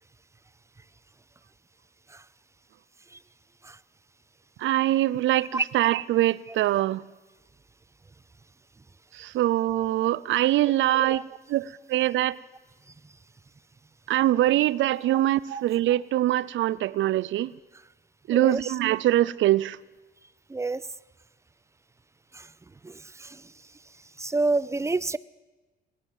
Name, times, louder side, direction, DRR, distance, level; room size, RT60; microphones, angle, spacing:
voice 1, 4.6-7.0 9.2-11.2 11.5-12.4 14.1-17.5 18.3-19.8, right 14 dB, 75° right, 0.4 m, -23 dB
voice 2, 18.3-18.7 20.5-20.8 22.3-22.4 22.8-23.4 24.2-25.2, right 3 dB, 15° right, 0.4 m, -28 dB
19.5 x 9.6 x 7.2 m
cardioid pair, 90°, 20 cm